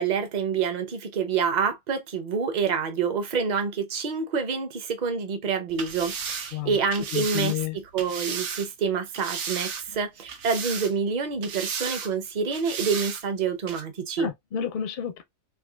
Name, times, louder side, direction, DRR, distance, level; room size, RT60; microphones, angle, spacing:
voice 1, 0.0-7.5 7.9-14.3, right 5 dB, 45° right, 0.6 m, -27 dB
sound 1, 5.7-8.7 9.1-10.0 10.3-11.1 11.4-12.1 12.5-13.2 13.7-13.8, right 6 dB, 65° right, 0.9 m, -34 dB
voice 2, 7.1-7.8 9.9-10.0 14.2-15.2, left 9 dB, 60° left, 0.5 m, -30 dB
3.7 x 2.5 x 2.3 m
omnidirectional pair, 1.4 m